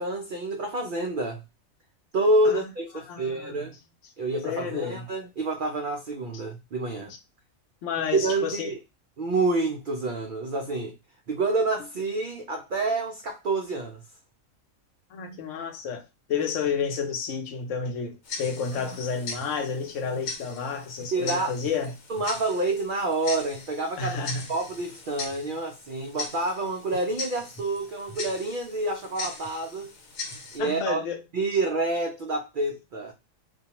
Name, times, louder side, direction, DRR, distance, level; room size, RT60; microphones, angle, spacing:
voice 1, 0.0-1.4 2.1-3.7 4.2-7.1 8.1-8.8 9.2-10.9 11.3-14.0 18.7-18.8 21.1-21.5 22.1-24.2 24.5-29.9 30.5-31.0 31.3-33.1, right 2 dB, 90° right, 0.4 m, -28 dB
voice 2, 3.1-3.7 4.4-5.1 7.8-8.7 15.1-16.0 16.3-21.9 24.0-24.5 30.6-31.2, left 6 dB, 70° left, 0.9 m, -30 dB
Tick-tock, 18.2-30.6, left 3 dB, 85° left, 1.2 m, -40 dB
2.4 x 2.2 x 2.8 m
omnidirectional pair, 1.4 m